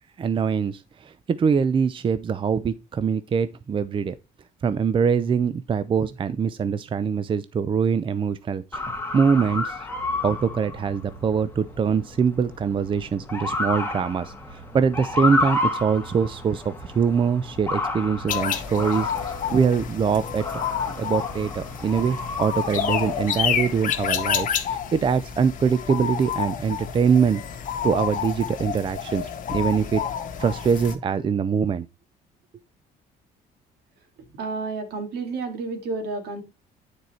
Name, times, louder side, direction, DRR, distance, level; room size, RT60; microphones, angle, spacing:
voice 1, 0.2-4.2 4.6-8.8 9.1-9.8 10.2-27.4 27.8-30.0 30.4-31.9, right 6 dB, 30° right, 0.5 m, -23 dB
Motor vehicle (road) / Siren, 8.7-24.3, left 2 dB, 10° left, 2.0 m, -31 dB
sound 1, 18.3-30.9, left 8 dB, 50° left, 1.6 m, -29 dB
voice 2, 34.4-36.4, right 3 dB, 75° right, 2.4 m, -30 dB
9.5 x 4.7 x 4.3 m
cardioid pair, 110°, 17 cm